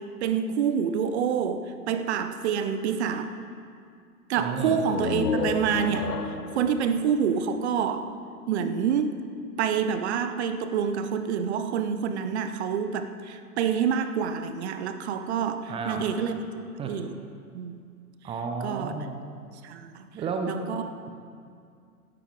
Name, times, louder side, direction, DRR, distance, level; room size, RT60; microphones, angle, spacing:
voice 1, 0.0-3.4 4.3-8.1 8.5-9.2 9.6-16.4 16.9-17.2 17.5-17.8 18.6-18.9 19.6-20.1 20.5-20.9, right 7 dB, 45° right, 10 dB, 0.9 m, -27 dB
voice 2, 4.4-4.8 15.7-16.1 16.8-16.9 18.2-19.2 20.1-20.6, right 5 dB, 10° right, 4 dB, 0.6 m, -32 dB
sound 1, 4.7-8.4, left 5 dB, 75° left, 0.9 m, -32 dB
16.5 x 12.5 x 3.7 m, 2.3 s
figure-of-eight pair, 100°, 47 cm